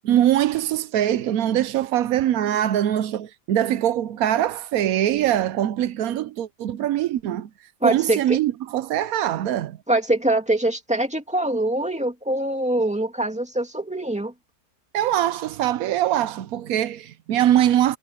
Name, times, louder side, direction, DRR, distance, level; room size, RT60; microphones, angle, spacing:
voice 1, 0.1-7.5 7.8-9.8 14.9-18.0, right 11 dB, 85° right, 1.1 m, -22 dB
voice 2, 7.8-8.4 9.9-14.3, right 1 dB, 5° right, 2.2 m, -23 dB
omnidirectional pair, 1.5 m